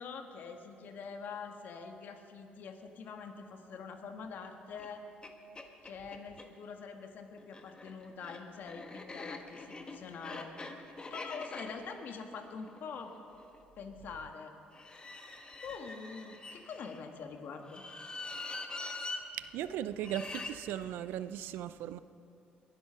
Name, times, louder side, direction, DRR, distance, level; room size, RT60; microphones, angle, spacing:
voice 1, 0.0-5.0 5.8-10.6 11.1-13.1 13.8-14.5 15.6-17.8, left 5 dB, 65° left, 1.6 m, -45 dB
sound 1, 4.8-4.9 5.2-5.3 5.6-6.5 7.4-13.6 14.7-17.0 17.6-19.2 20.0-20.5, left 3 dB, 25° left, 1.5 m, -44 dB
voice 2, 19.4-22.0, right 11 dB, 80° right, 0.5 m, -37 dB
21.5 x 10.5 x 5.7 m
supercardioid pair, 80°, 4 cm